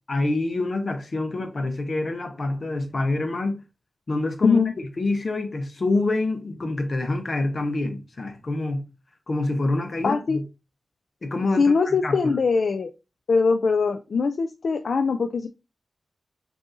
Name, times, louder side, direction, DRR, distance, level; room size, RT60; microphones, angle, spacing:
voice 1, 0.1-3.6 4.1-4.6 5.0-8.8 9.3-10.4 11.2-12.4, left 2 dB, 50° left, 0.9 m, -26 dB
voice 2, 4.4-4.7 10.0-10.4 11.6-12.9 13.3-15.5, left 4 dB, 75° left, 0.4 m, -22 dB
5.2 x 2.7 x 3.7 m
wide cardioid pair, 95°, 0 cm